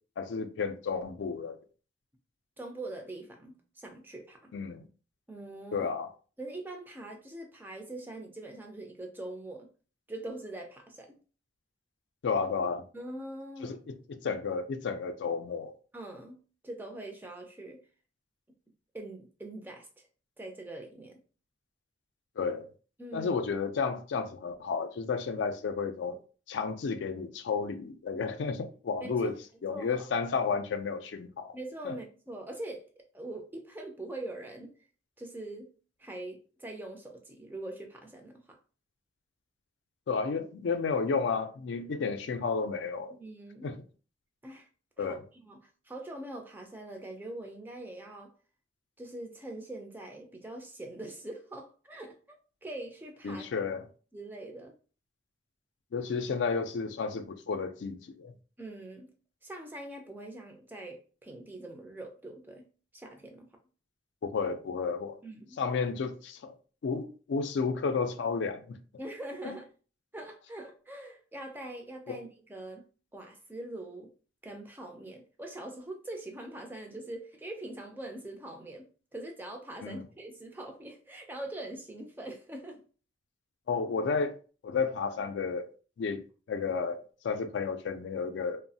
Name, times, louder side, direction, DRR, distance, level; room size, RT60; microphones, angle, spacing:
voice 1, 0.2-1.6 4.5-4.8 5.7-6.1 12.2-12.8 13.6-15.7 22.4-22.7 23.1-26.2 26.5-29.3 29.6-31.5 31.8-32.0 40.1-43.1 43.6-43.8 45.0-45.2 53.2-53.9 55.9-58.3 64.2-65.2 65.6-66.5 66.8-68.8 69.4-69.5 72.1-72.2 79.8-80.0 83.7-84.4 84.6-85.7 86.0-88.6, left 5 dB, 80° left, 0.3 m, -32 dB
voice 2, 2.6-4.5 5.3-5.9 6.4-9.7 10.1-11.2 12.9-13.8 15.9-16.4 16.6-17.8 18.9-19.9 20.4-21.1 23.0-23.3 29.0-29.3 29.7-30.1 31.5-34.7 35.2-35.7 36.0-38.6 43.1-43.7 44.4-44.7 45.0-45.2 45.5-48.3 49.0-52.2 52.6-53.5 54.1-54.7 58.6-59.1 59.4-62.7 62.9-63.5 65.2-65.6 69.0-69.6 70.1-72.9 73.1-74.1 74.4-82.8, right 1 dB, 10° right, 0.3 m, -43 dB
2.9 x 2.0 x 2.6 m
head